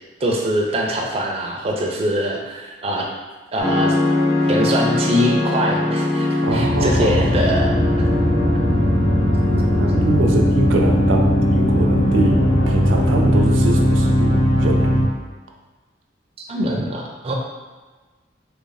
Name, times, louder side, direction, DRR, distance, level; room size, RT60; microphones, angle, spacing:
voice 1, 0.2-3.1 3.5-4.0 4.5-8.1 16.5-17.3, equal, 30° right, -1 dB, 0.4 m, -23 dB
sound 1, 3.6-15.0, left 1 dB, 85° left, 1.3 m, -18 dB
voice 2, 6.4-7.3 9.2-14.9, right 2 dB, 85° right, 1 dB, 0.5 m, -23 dB
3.2 x 2.6 x 3.9 m, 1.3 s
head